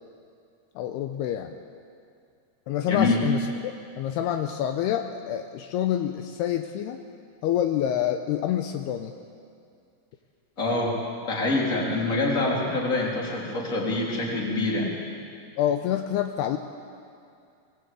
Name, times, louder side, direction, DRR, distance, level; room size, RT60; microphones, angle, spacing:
voice 1, 0.8-1.5 2.7-7.0 7.4-9.1 15.6-16.6, left 10 dB, 80° left, 6 dB, 2.7 m, -27 dB
voice 2, 2.9-3.2 10.6-10.9 11.3-14.9, left 2 dB, 20° left, -3 dB, 3.2 m, -25 dB
20.5 x 18.5 x 8.3 m, 2.4 s
omnidirectional pair, 4.9 m